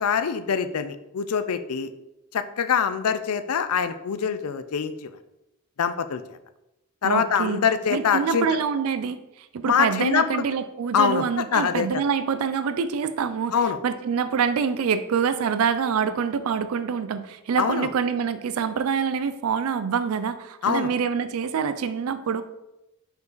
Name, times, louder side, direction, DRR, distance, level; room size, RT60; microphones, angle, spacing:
voice 1, 0.0-1.9 2.3-5.2 5.8-6.4 7.0-8.5 9.6-10.4 10.9-11.9 13.5-13.8 17.6-17.9 20.6-20.9, left 7 dB, 85° left, 11 dB, 0.5 m, -24 dB
voice 2, 7.0-7.6 7.9-13.5 13.8-22.4, right 6 dB, 75° right, 11 dB, 0.4 m, -26 dB
5.2 x 5.1 x 4.0 m, 0.93 s
head